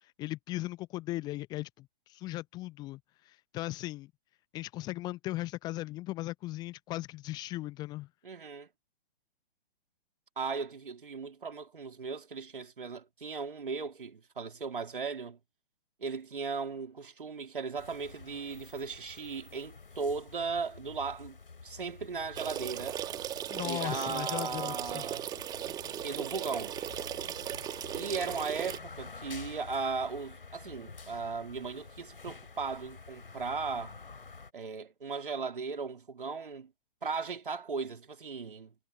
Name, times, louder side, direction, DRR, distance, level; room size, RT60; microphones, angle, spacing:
voice 1, 0.2-3.0 3.2-4.1 4.5-8.1 23.5-25.0, left 17 dB, 15° left, 0.9 m, -37 dB
voice 2, 8.2-8.7 10.4-15.4 16.0-21.4 21.6-23.0 23.6-25.3 26.0-26.8 27.9-34.0 34.5-36.7 37.0-38.7, right 4 dB, 60° right, 3.2 m, -37 dB
sound 1, 17.8-34.5, left 4 dB, 70° left, 3.9 m, -49 dB
sound 2, 22.3-28.8, right 11 dB, 15° right, 2.2 m, -37 dB
figure-of-eight pair, 125°, 29 cm